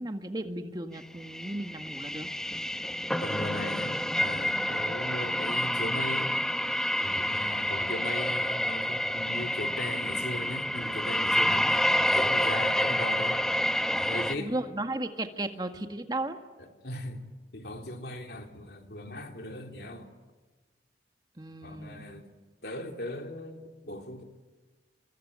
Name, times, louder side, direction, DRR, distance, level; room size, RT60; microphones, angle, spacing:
voice 1, 0.0-2.3 11.5-11.7 14.4-16.4 21.4-22.1, right 1 dB, 25° right, 1.8 m, -35 dB
sound 1, 1.2-14.4, equal, 5° left, 1.1 m, -28 dB
voice 2, 3.2-6.4 7.0-13.6 13.9-14.5 16.6-17.3 17.5-20.1 21.6-22.3 22.6-24.2, left 1 dB, 60° left, 3.2 m, -38 dB
25.0 x 24.5 x 9.7 m
head